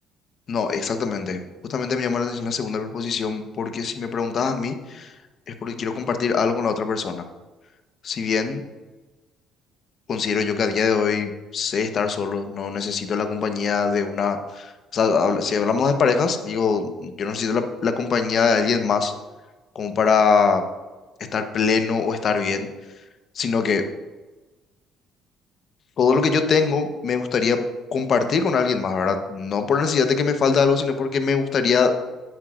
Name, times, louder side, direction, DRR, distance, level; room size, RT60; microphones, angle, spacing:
voice 1, 0.5-1.4 1.7-5.1 5.5-7.2 8.0-8.6 10.1-19.1 19.7-20.6 21.3-22.7 23.3-23.8 26.0-27.6 27.9-31.9, left 5 dB, 55° left, 7 dB, 1.0 m, -22 dB
9.8 x 9.2 x 2.5 m, 1.2 s
supercardioid pair, 70°, 0 cm